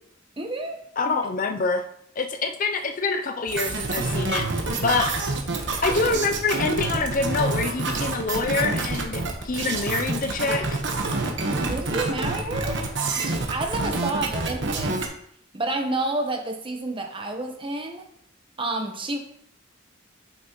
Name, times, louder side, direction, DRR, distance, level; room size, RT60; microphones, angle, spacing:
voice 1, 0.4-0.8 1.1-1.2 11.7-15.0 15.5-18.0 18.6-19.2, right 2 dB, 25° right, 4 dB, 1.1 m, -30 dB
voice 2, 1.0-1.8 2.2-5.2 5.8-10.8, left 3 dB, 45° left, 7 dB, 0.5 m, -26 dB
sound 1, 3.5-15.1, right 3 dB, 65° right, 1.2 m, -27 dB
8.9 x 6.2 x 3.1 m, 0.68 s
head